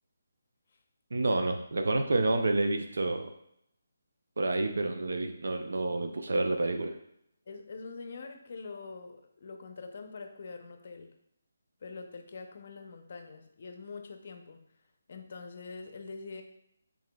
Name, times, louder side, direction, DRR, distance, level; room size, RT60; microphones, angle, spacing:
voice 1, 1.1-3.3 4.4-6.9, right 2 dB, 75° right, 6 dB, 0.4 m, -29 dB
voice 2, 7.5-11.1 11.8-14.6 15.1-16.4, left 4 dB, 50° left, 6 dB, 0.5 m, -44 dB
4.9 x 3.6 x 2.2 m, 0.76 s
hypercardioid pair, 160°, 0 cm